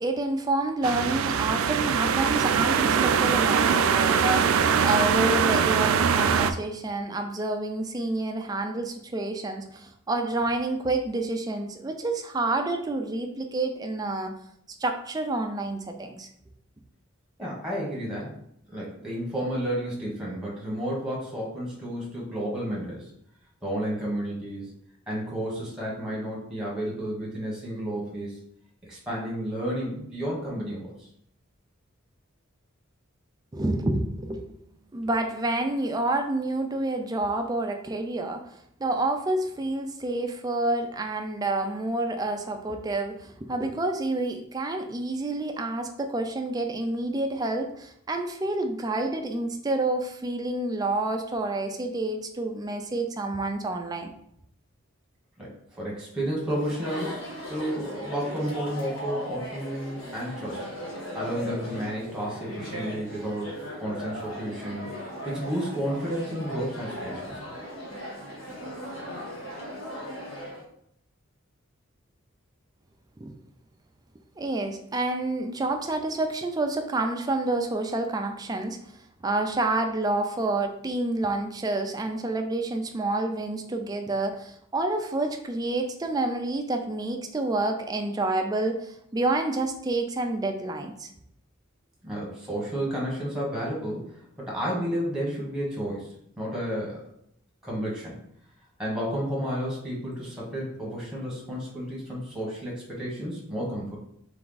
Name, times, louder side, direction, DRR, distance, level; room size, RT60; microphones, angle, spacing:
voice 1, 0.0-14.3 14.8-16.3 33.5-34.5 34.9-38.4 38.8-54.1 73.2-73.3 74.4-78.8 79.2-91.1, right 2 dB, 20° right, 5 dB, 0.4 m, -28 dB
sound 1, 0.8-6.5, right 7 dB, 85° right, 0.3 m, -22 dB
voice 2, 17.4-18.3 18.7-23.1 23.6-24.7 25.1-28.4 28.9-31.1 55.4-57.2 57.5-60.7 61.1-64.9 65.2-67.5 92.0-97.0 97.6-98.2 98.8-104.0, equal, 5° right, -5 dB, 1.5 m, -31 dB
Chatter, 56.5-70.6, equal, 70° left, 1.5 m, -38 dB
3.5 x 3.4 x 3.9 m, 0.72 s
head